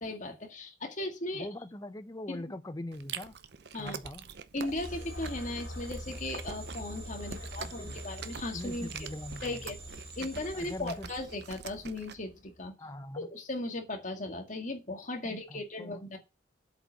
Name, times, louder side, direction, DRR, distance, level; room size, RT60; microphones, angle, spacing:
voice 1, 0.0-1.5 2.3-2.5 3.7-4.0 4.5-9.1 9.4-9.8 10.2-12.7 13.2-16.2, left 2 dB, 40° left, 2.0 m, -37 dB
voice 2, 1.3-3.3 3.8-4.2 7.3-8.0 8.5-9.6 10.2-11.1 12.8-13.3 15.2-16.0, left 1 dB, 20° left, 0.6 m, -42 dB
Chewing mastication, 2.9-12.2, right 6 dB, 60° right, 0.7 m, -45 dB
sound 1, 4.6-11.7, right 3 dB, 30° right, 2.4 m, -50 dB
sound 2, 4.8-12.7, left 1 dB, 70° left, 4.1 m, -46 dB
8.2 x 5.2 x 6.7 m
head